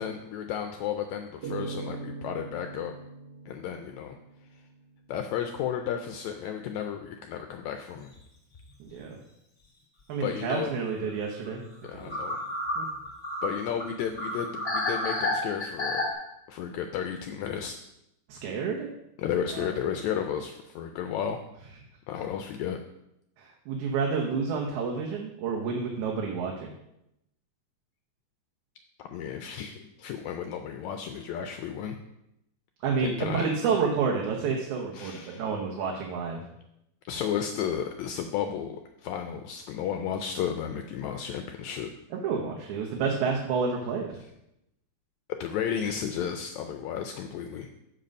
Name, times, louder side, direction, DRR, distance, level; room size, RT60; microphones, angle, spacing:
voice 1, 0.0-2.9 3.5-4.2 5.1-8.1 10.2-10.7 11.8-12.4 13.4-16.1 16.5-17.8 19.2-21.4 22.1-22.8 29.0-32.0 33.0-33.5 34.9-35.5 37.1-41.9 45.3-47.7, left 8 dB, 80° left, 5 dB, 1.7 m, -33 dB
sound 1, 1.4-4.8, right 4 dB, 50° right, 1.5 m, -40 dB
sound 2, 7.9-8.2 8.5-8.6 11.1-11.2 11.5-11.6 11.8-16.1, left 1 dB, 20° left, 2.2 m, -30 dB
voice 2, 8.8-9.2 10.1-11.6 12.0-12.1 12.8-12.9 18.3-18.9 19.5-19.7 23.4-26.7 32.8-36.4 42.2-44.1, right 5 dB, 75° right, 0 dB, 2.3 m, -29 dB
7.6 x 6.8 x 5.3 m, 0.83 s
omnidirectional pair, 3.6 m